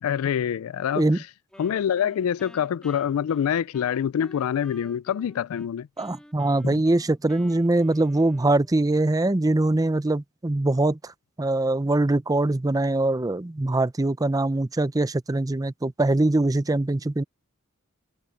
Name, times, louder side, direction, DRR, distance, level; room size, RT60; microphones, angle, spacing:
voice 1, 0.0-1.3 1.6-5.9 6.7-6.8, left 8 dB, 80° left, 0.3 m, -26 dB
Wind instrument woodwind instrument, 1.5-5.7 6.0-8.9, equal, 5° left, 3.2 m, -51 dB
voice 2, 6.0-11.1 11.4-17.2, right 2 dB, 15° right, 0.5 m, -23 dB
head